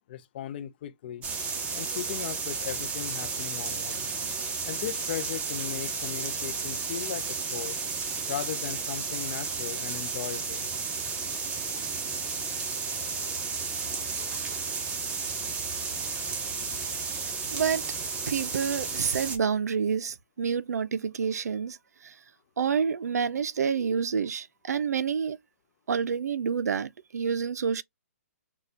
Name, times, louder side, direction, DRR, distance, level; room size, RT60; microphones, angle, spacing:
voice 1, 0.1-1.3 1.7-4.1 4.6-7.8 8.3-10.7, left 11 dB, 40° left, 0.5 m, -37 dB
sound 1, 1.2-19.4, right 5 dB, 15° right, 0.7 m, -33 dB
voice 2, 17.5-17.9 18.3-21.8 22.0-22.1 22.6-25.4 25.9-27.8, right 6 dB, 85° right, 0.4 m, -28 dB
4.0 x 2.2 x 2.7 m
hypercardioid pair, 155°, 8 cm